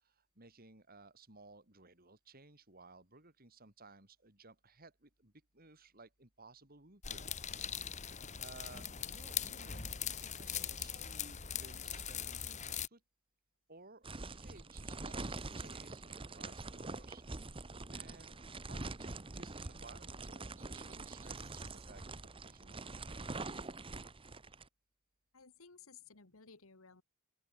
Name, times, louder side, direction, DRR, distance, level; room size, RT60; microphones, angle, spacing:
voice 1, 0.4-7.2 8.4-13.0 13.7-17.2 17.9-23.7, right 3 dB, 45° right, 4.7 m, -58 dB
sound 1, 7.0-12.9, left 8 dB, 35° left, 1.9 m, -41 dB
sound 2, 14.0-24.6, right 3 dB, 25° right, 1.1 m, -45 dB
sound 3, 14.5-15.9 20.6-21.9, right 14 dB, 65° right, 5.2 m, -64 dB
voice 2, 25.3-27.0, left 5 dB, 70° left, 1.7 m, -58 dB
open air
head